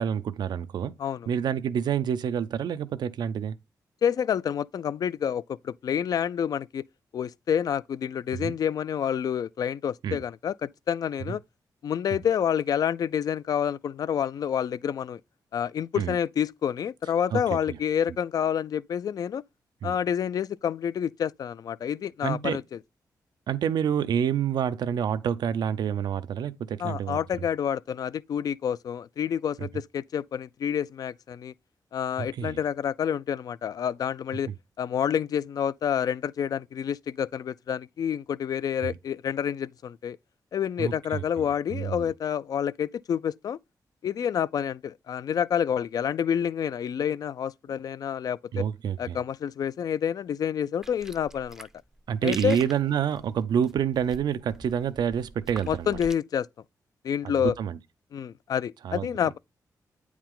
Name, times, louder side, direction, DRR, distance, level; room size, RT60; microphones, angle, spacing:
voice 1, 0.0-0.9 1.3-3.6 8.3-8.5 10.0-10.2 16.0-16.2 17.3-17.4 17.7-17.8 19.8-20.0 22.2-22.6 23.5-27.2 29.6-29.7 32.2-32.6 34.5-34.6 38.8-39.0 40.8-41.2 41.7-42.1 48.5-49.2 52.1-56.0 57.4-57.8 58.8-59.1, right 8 dB, 90° right, 0.5 m, -28 dB
voice 2, 4.0-6.8 7.1-11.4 11.8-15.2 15.5-19.4 19.8-22.6 26.8-31.5 31.9-34.5 34.8-40.2 40.5-43.6 44.0-48.7 49.0-51.7 52.2-52.6 55.7-56.5 57.0-57.5 58.1-59.4, left 8 dB, 60° left, 0.3 m, -28 dB
sound 1, 50.8-56.1, right 1 dB, 5° right, 0.5 m, -45 dB
9.0 x 4.8 x 3.7 m
wide cardioid pair, 130°, 7 cm